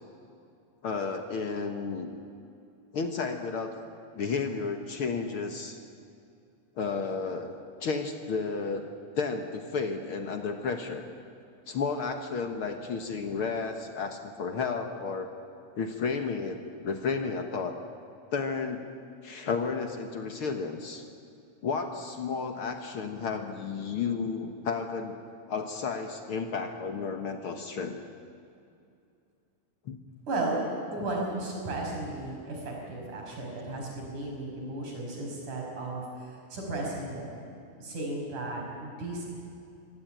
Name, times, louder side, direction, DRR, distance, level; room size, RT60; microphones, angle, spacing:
voice 1, 0.8-2.1 2.9-3.7 4.2-5.8 6.8-7.5 7.8-8.9 9.2-11.0 11.7-15.3 15.8-17.7 18.3-18.9 19.2-21.1 21.6-25.2 25.5-28.0 29.9-30.0, left 5 dB, 55° left, 5 dB, 1.8 m, -32 dB
voice 2, 30.3-30.6 30.9-37.3 37.8-39.3, right 2 dB, 85° right, -1 dB, 7.3 m, -34 dB
25.0 x 17.5 x 9.1 m, 2.5 s
omnidirectional pair, 3.4 m